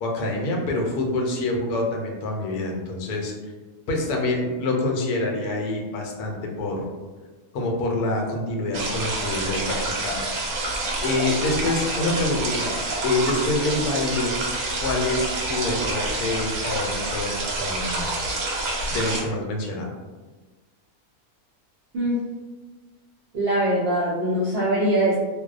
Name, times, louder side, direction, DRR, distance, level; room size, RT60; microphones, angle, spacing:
voice 1, 0.0-3.3 3.9-6.8 7.5-10.2 11.0-12.8 13.0-14.3 14.8-18.1 18.9-19.9, left 2 dB, 90° left, 0 dB, 1.1 m, -26 dB
sound 1, 8.7-19.2, right 2 dB, 80° right, 1.1 m, -27 dB
voice 2, 23.3-25.2, right 1 dB, 65° right, -8 dB, 0.6 m, -22 dB
2.6 x 2.0 x 2.3 m, 1.3 s
omnidirectional pair, 1.6 m